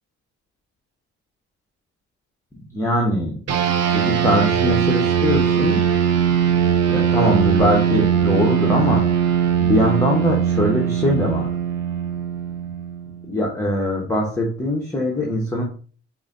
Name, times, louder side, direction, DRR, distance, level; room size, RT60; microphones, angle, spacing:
voice 1, 2.7-3.4 3.9-5.8 6.9-9.3 9.6-11.5 13.3-15.6, left 1 dB, 10° left, -2 dB, 1.1 m, -22 dB
sound 1, 3.5-13.2, right 8 dB, 60° right, 0.7 m, -20 dB
4.9 x 2.8 x 2.6 m, 0.40 s
cardioid pair, 90°, 30 cm